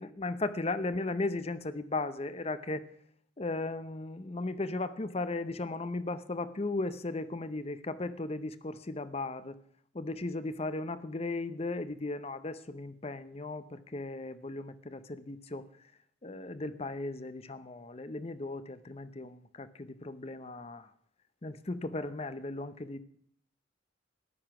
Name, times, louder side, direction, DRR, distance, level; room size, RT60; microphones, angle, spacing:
voice 1, 0.0-2.8 3.4-9.6 9.9-15.6 16.2-20.9 21.4-23.0, left 2 dB, 30° left, 14 dB, 0.7 m, -36 dB
13.5 x 11.0 x 5.9 m, 0.66 s
head